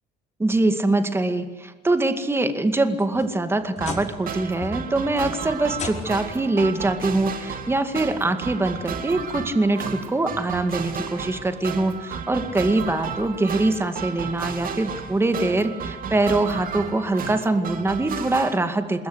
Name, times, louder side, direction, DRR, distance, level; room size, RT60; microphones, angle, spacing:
voice 1, 0.4-19.1, right 2 dB, 15° right, 8 dB, 2.1 m, -23 dB
sound 1, 2.7-4.3 4.6-5.1 5.7-6.4 7.6-7.7 8.3-8.4 10.0-10.1, left 4 dB, 45° left, 4.8 m, -36 dB
sound 2, 3.8-18.6, right 6 dB, 55° right, 3.0 m, -33 dB
27.0 x 21.0 x 7.9 m, 1.4 s
cardioid pair, 110°, 17 cm